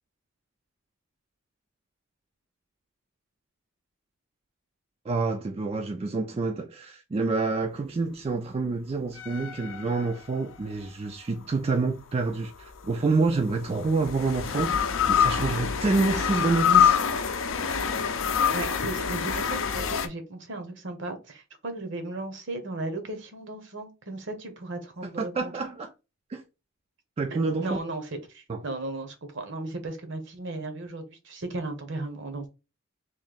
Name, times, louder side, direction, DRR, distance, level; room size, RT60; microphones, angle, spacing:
voice 1, 5.1-17.0 25.2-25.9 26.3-26.4 27.2-27.8 28.5-28.6, right 3 dB, 30° right, 0.3 m, -28 dB
sound 1, 9.2-10.7 12.5-20.1, left 7 dB, 65° left, 0.5 m, -26 dB
voice 2, 18.5-25.5 27.6-32.5, right 2 dB, 60° right, 0.9 m, -36 dB
3.1 x 2.7 x 3.9 m
head